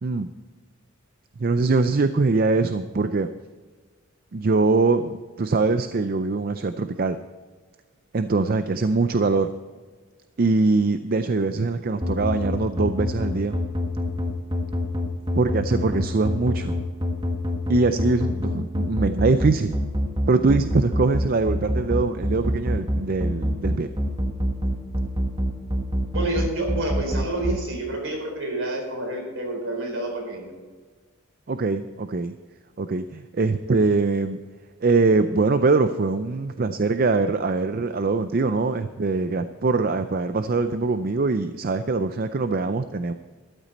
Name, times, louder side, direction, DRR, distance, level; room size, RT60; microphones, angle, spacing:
voice 1, 1.4-3.3 4.3-7.2 8.1-9.5 10.4-13.5 15.4-16.7 17.7-19.8 20.3-23.9 31.5-32.3 32.8-34.4 34.8-43.1, right 3 dB, 45° right, 10 dB, 0.5 m, -22 dB
sound 1, 12.0-27.6, equal, 25° right, 1.5 m, -24 dB
voice 2, 26.1-30.5, right 1 dB, 65° right, 2 dB, 4.3 m, -28 dB
13.5 x 12.0 x 4.2 m, 1.5 s
head